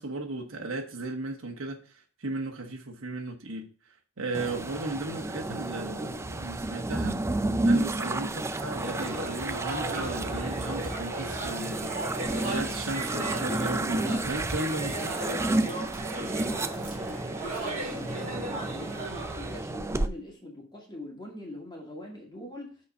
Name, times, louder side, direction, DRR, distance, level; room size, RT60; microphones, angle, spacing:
voice 1, 0.0-3.7 4.2-7.2 7.6-15.1, right 2 dB, 70° right, 1.3 m, -35 dB
sound 1, 4.3-20.1, right 2 dB, 15° right, 0.4 m, -31 dB
sound 2, 8.6-19.6, right 2 dB, 40° right, 3.7 m, -37 dB
voice 2, 16.2-22.8, left 1 dB, 20° left, 2.1 m, -43 dB
7.7 x 4.2 x 5.4 m
head